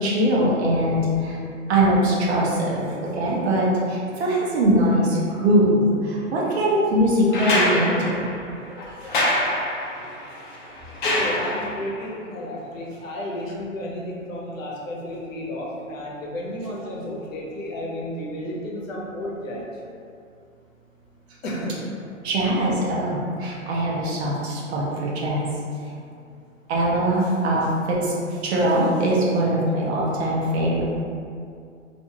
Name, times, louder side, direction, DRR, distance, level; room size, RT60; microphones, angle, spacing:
voice 1, 0.0-1.4 1.7-2.9 3.1-8.1 9.0-9.1 22.2-25.5 26.7-30.8, right 1 dB, 55° right, -5 dB, 0.8 m, -22 dB
sound 1, 7.3-11.9 13.5-13.6, left 1 dB, 40° left, 0.6 m, -25 dB
voice 2, 11.1-19.7 21.4-21.9, left 1 dB, 75° left, -3 dB, 0.8 m, -32 dB
2.5 x 2.3 x 2.8 m, 2.4 s
hypercardioid pair, 130°, 40 cm